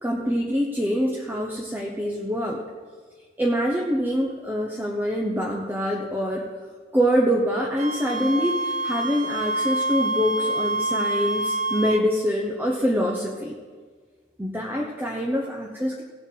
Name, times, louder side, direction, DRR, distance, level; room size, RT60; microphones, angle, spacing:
voice 1, 0.0-2.6 3.4-6.5 6.9-13.6 14.4-16.0, equal, 10° right, -1 dB, 0.9 m, -25 dB
Wind instrument woodwind instrument, 7.8-12.1, right 2 dB, 40° right, 0.7 m, -26 dB
18.0 x 7.0 x 3.9 m, 1.5 s
head